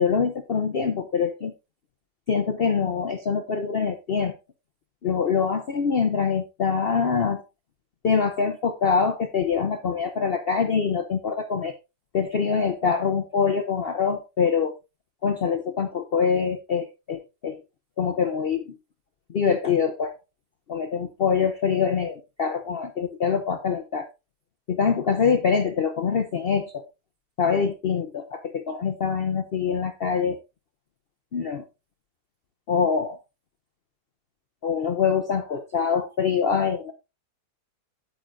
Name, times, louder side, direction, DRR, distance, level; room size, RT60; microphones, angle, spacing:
voice 1, 0.0-1.5 2.3-4.3 5.0-7.4 8.0-11.7 12.1-14.7 15.2-17.6 18.0-18.8 19.3-20.1 20.7-24.1 24.7-26.8 27.4-30.4 31.3-31.6 32.7-33.1 34.6-36.9, left 6 dB, 60° left, 6 dB, 0.6 m, -24 dB
8.6 x 8.2 x 2.5 m, 0.26 s
omnidirectional pair, 1.8 m